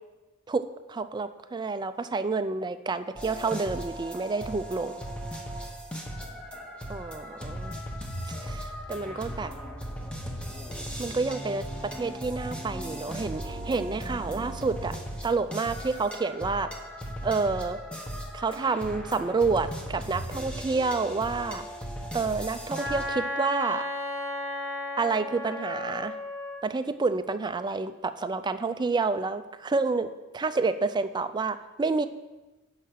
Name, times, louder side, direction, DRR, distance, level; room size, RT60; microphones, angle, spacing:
voice 1, 0.5-4.9 6.9-7.8 8.4-9.5 11.0-16.7 17.2-17.8 18.3-21.7 22.1-23.9 25.0-26.2 26.6-32.1, right 4 dB, 20° right, 11 dB, 0.3 m, -29 dB
sound 1, 3.2-23.1, equal, 5° left, 0.9 m, -37 dB
Wind instrument woodwind instrument, 22.7-26.6, left 2 dB, 90° left, 2.4 m, -34 dB
7.4 x 5.6 x 6.3 m, 1.1 s
head